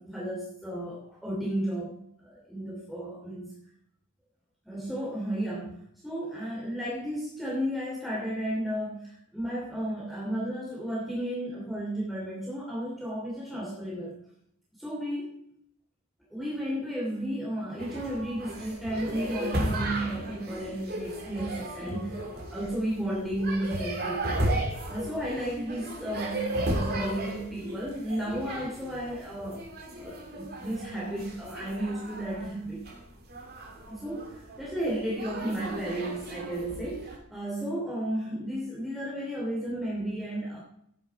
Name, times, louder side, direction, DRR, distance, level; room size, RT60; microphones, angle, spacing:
voice 1, 0.0-3.6 4.6-5.7 6.0-14.1 14.8-15.3 16.3-24.5 24.9-29.6 30.0-32.8 33.9-40.6, right 1 dB, ahead, -5 dB, 2.9 m, -33 dB
sound 1, 17.8-37.2, right 1 dB, 45° right, 2.5 m, -35 dB
13.5 x 9.7 x 4.7 m, 0.69 s
head